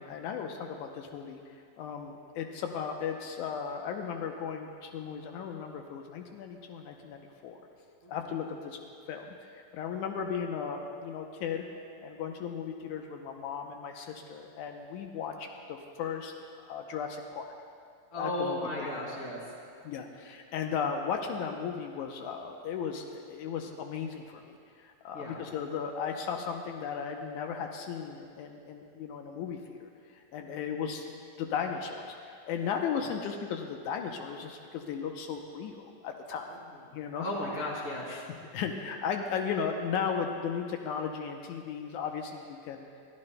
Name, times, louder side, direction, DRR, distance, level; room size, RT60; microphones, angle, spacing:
voice 1, 0.0-1.4 1.8-7.6 8.1-8.8 9.1-11.6 12.0-17.4 18.2-18.9 19.8-36.6 36.9-37.3 38.1-38.3 38.5-42.9, left 6 dB, 85° left, 3 dB, 2.2 m, -36 dB
voice 2, 18.1-19.4 25.1-25.4 30.4-30.7 33.0-33.1 36.5-36.6 37.2-38.2, left 1 dB, 30° left, -3 dB, 2.5 m, -35 dB
22.0 x 13.5 x 2.2 m, 2.2 s
omnidirectional pair, 3.4 m